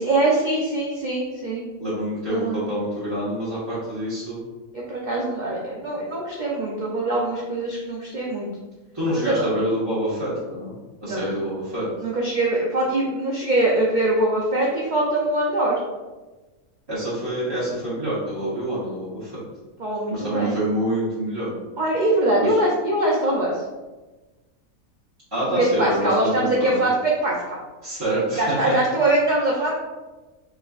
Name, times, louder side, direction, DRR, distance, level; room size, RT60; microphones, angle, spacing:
voice 1, 0.0-1.6 2.3-2.6 4.7-8.5 9.1-9.4 11.0-11.2 12.0-15.8 19.8-20.6 21.8-23.5 25.5-27.6 28.4-29.7, right 1 dB, 85° right, -3 dB, 0.4 m, -23 dB
voice 2, 1.8-4.4 8.9-10.7 11.0-11.9 16.9-19.4 20.1-21.5 22.4-22.5 25.3-26.9 27.8-28.7, right 1 dB, 20° right, -12 dB, 1.0 m, -26 dB
4.2 x 3.5 x 2.4 m, 1.2 s
omnidirectional pair, 1.6 m